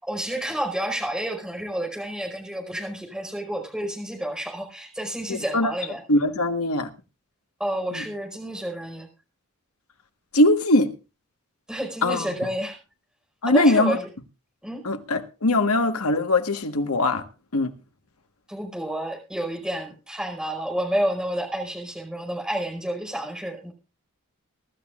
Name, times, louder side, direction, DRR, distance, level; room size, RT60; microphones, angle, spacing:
voice 1, 0.0-6.0 7.6-9.1 11.7-12.8 13.5-14.1 14.6-14.8 18.5-23.7, right 1 dB, 5° right, 5.0 m, -30 dB
voice 2, 5.3-5.7 6.1-6.9 7.9-8.0 10.3-10.9 12.0-12.3 13.4-14.0 14.8-17.2 17.5-17.7, left 1 dB, 80° left, 1.5 m, -21 dB
23.5 x 12.5 x 2.5 m
head